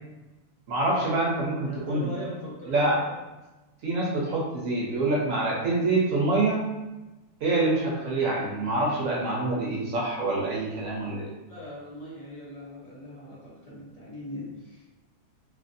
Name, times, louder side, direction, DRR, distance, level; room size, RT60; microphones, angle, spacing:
voice 1, 0.7-2.1 2.7-3.0 3.8-6.7 7.4-11.3, right 2 dB, 65° right, -3 dB, 0.9 m, -26 dB
voice 2, 1.6-3.1 11.5-14.8, equal, 45° left, -7 dB, 0.5 m, -40 dB
3.1 x 2.4 x 2.6 m, 1.1 s
omnidirectional pair, 1.7 m